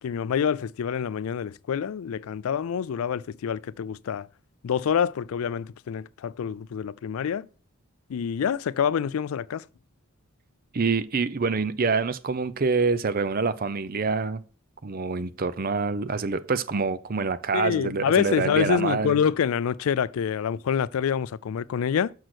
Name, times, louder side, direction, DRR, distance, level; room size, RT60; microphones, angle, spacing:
voice 1, 0.0-4.3 4.6-7.5 8.1-9.7 17.5-22.1, left 7 dB, 85° left, 0.4 m, -26 dB
voice 2, 10.7-14.4 14.8-19.2, right 4 dB, 45° right, 0.6 m, -26 dB
6.4 x 6.2 x 6.1 m
head